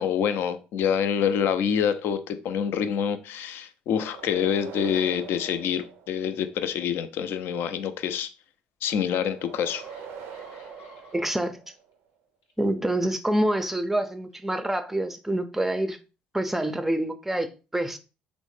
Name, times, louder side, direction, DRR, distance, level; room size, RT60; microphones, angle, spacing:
voice 1, 0.0-8.3 8.8-9.8, left 8 dB, 65° left, 0.4 m, -26 dB
sound 1, 3.9-6.7 9.3-12.0, right 7 dB, 70° right, 0.4 m, -43 dB
sound 2, 8.8-8.9 9.4-11.7 12.4-12.6, left 2 dB, 80° left, 0.9 m, -52 dB
voice 2, 11.1-11.6 12.6-16.0 16.3-18.0, right 1 dB, 5° right, 0.4 m, -26 dB
3.3 x 2.0 x 3.1 m
hypercardioid pair, 65°, 4 cm